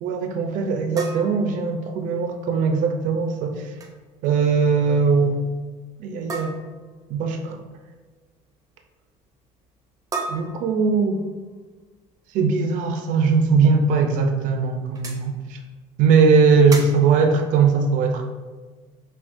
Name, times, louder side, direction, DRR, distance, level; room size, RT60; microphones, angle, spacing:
voice 1, 0.0-3.8 4.2-5.4 6.0-6.5 7.1-7.6 10.3-11.2 12.3-15.6 16.0-18.2, right 5 dB, 75° right, 4 dB, 0.5 m, -20 dB
sound 1, 1.0-2.3 3.6-4.0 4.2-4.5 4.8-4.9 6.3-7.0 10.1-11.3 13.3-13.4 14.0-14.1 15.0-15.3 16.7-17.2, right 3 dB, 25° right, 0.5 m, -34 dB
5.8 x 2.3 x 2.5 m, 1.3 s
cardioid pair, 120°, 14 cm